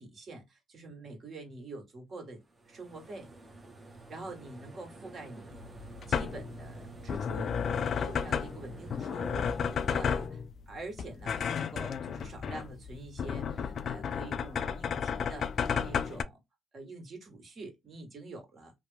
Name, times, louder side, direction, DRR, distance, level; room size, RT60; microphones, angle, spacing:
voice 1, 0.0-3.3 4.1-5.6 6.1-16.4 16.7-18.7, right 2 dB, 50° right, 1.5 m, -46 dB
sound 1, 2.5-10.3, right 2 dB, 30° right, 0.9 m, -48 dB
sound 2, 5.5-16.2, left 7 dB, 60° left, 0.3 m, -33 dB
2.9 x 2.0 x 3.4 m
cardioid pair, 90°, 0 cm